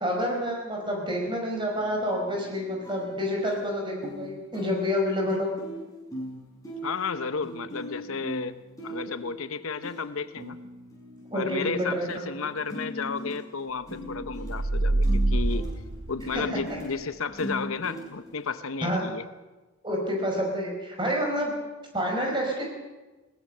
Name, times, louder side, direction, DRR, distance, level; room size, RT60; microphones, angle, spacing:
voice 1, 0.0-5.5 11.3-12.1 16.3-16.4 18.8-19.0 19.8-21.6 21.9-22.7, equal, 20° right, 1 dB, 5.1 m, -28 dB
sound 1, 1.6-3.6 4.0-4.3 4.5-12.2 12.4-18.5, equal, 15° left, 6.1 m, -40 dB
voice 2, 6.8-8.6 8.8-10.6 11.3-15.6 16.1-19.2, left 5 dB, 75° left, 12 dB, 0.8 m, -32 dB
sound 2, 14.1-16.8, right 2 dB, 60° right, 0.9 m, -26 dB
21.0 x 18.5 x 6.7 m, 1.2 s
head